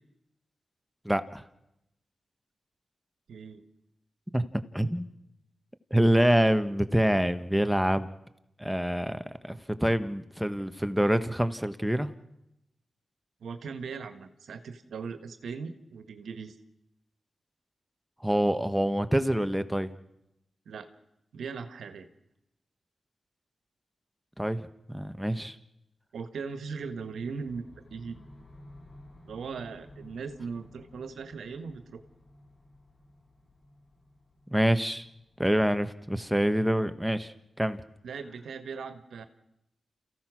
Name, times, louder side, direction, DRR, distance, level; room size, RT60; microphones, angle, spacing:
voice 1, 1.0-1.4 4.3-4.4 4.7-5.1 5.9-8.1 8.6-12.1 18.2-19.9 24.4-25.6 34.5-35.1 35.4-37.8, equal, 5° right, 10 dB, 1.5 m, -26 dB
voice 2, 3.3-3.6 13.4-16.6 20.6-20.9 21.3-22.1 26.1-27.6 27.9-28.2 29.3-32.0 38.0-39.3, right 5 dB, 85° right, 9 dB, 1.5 m, -39 dB
sound 1, 26.5-36.6, left 1 dB, 45° left, 5.1 m, -55 dB
28.5 x 15.5 x 6.2 m, 0.86 s
cardioid pair, 50°, 0 cm